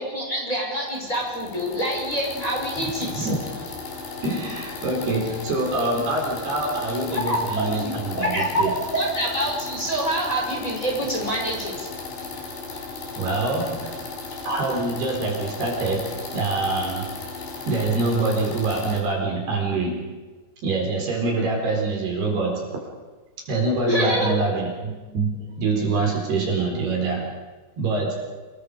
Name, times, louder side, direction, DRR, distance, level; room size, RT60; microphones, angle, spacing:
voice 1, 0.0-3.3 7.1-11.9 23.9-24.4, equal, 15° left, -3 dB, 6.3 m, -26 dB
sound 1, 0.8-19.0, left 3 dB, 65° left, 7.3 m, -36 dB
voice 2, 3.1-3.4 4.2-8.7 13.2-13.9 14.5-17.1 17.7-20.2 20.6-22.9 23.4-27.4 27.8-28.3, right 3 dB, 55° right, 0 dB, 6.1 m, -25 dB
29.5 x 22.0 x 5.1 m, 1.3 s
omnidirectional pair, 5.8 m